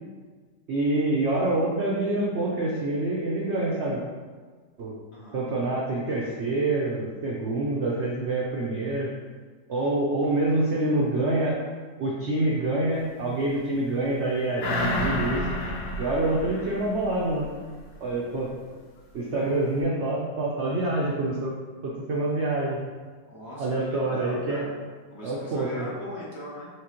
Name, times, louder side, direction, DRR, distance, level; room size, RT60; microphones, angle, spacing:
voice 1, 0.7-4.0 4.8-4.9 5.3-9.1 9.7-11.6 12.0-15.4 16.0-17.5 18.0-18.5 19.1-21.5 21.8-22.8 23.6-24.7 25.2-25.9, right 2 dB, 70° right, -4 dB, 0.6 m, -26 dB
voice 2, 5.1-5.4 19.4-19.5 23.3-24.8 25.1-26.7, left 1 dB, 45° left, -7 dB, 1.0 m, -39 dB
sound 1, 14.6-17.5 17.9-18.0, left 1 dB, 70° left, 1.2 m, -30 dB
4.9 x 3.3 x 2.9 m, 1.5 s
omnidirectional pair, 1.9 m